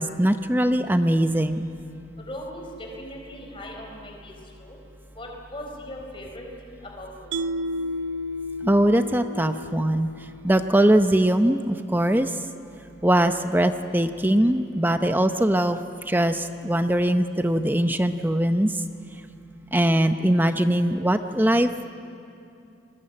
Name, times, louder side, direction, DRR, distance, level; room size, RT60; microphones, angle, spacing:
voice 1, 0.0-1.7 8.6-10.1 10.4-12.3 13.0-18.7 19.7-21.8, right 1 dB, 10° right, 8 dB, 0.7 m, -21 dB
voice 2, 2.2-4.3 4.6-4.8 5.2-7.3, equal, 25° left, 1 dB, 4.2 m, -39 dB
Mallet percussion, 7.3-10.6, left 1 dB, 70° right, 0.7 m, -32 dB
29.5 x 21.0 x 8.8 m, 2.6 s
head